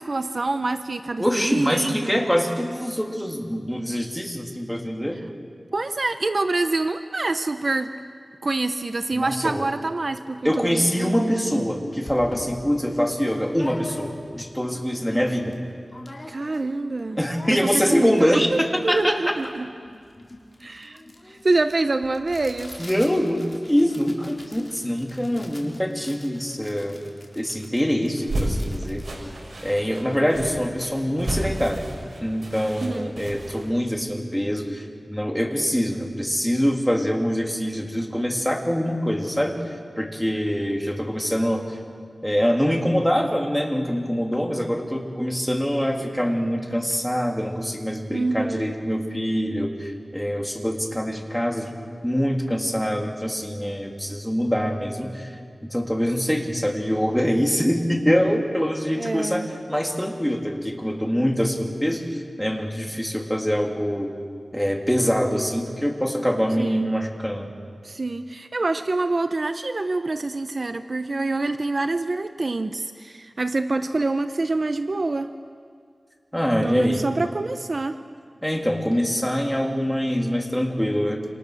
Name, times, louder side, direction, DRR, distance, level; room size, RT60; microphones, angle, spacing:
voice 1, 0.0-2.3 5.7-7.9 8.4-11.7 16.3-17.2 17.5-19.7 20.6-21.0 21.3-22.8 32.8-33.1 48.1-48.7 58.9-59.5 66.6-66.9 67.8-75.3 76.6-78.0, right 2 dB, 55° right, 9 dB, 0.9 m, -26 dB
voice 2, 1.2-5.2 9.2-9.7 10.4-15.6 17.2-19.1 22.8-27.0 27.3-29.0 29.6-31.8 32.2-39.6 40.0-41.8 42.2-51.7 52.0-55.4 55.7-64.1 64.5-67.5 76.3-77.0 78.4-81.2, equal, 5° left, 1 dB, 3.3 m, -24 dB
sound 1, 11.6-11.7 12.1-14.4 14.9-15.0 15.1-15.6 15.9-16.7 17.0-30.1, left 1 dB, 35° left, 4.4 m, -43 dB
sound 2, 28.1-33.6, right 1 dB, 75° right, 6.4 m, -32 dB
28.0 x 27.5 x 6.6 m, 2.1 s
wide cardioid pair, 75°, 0 cm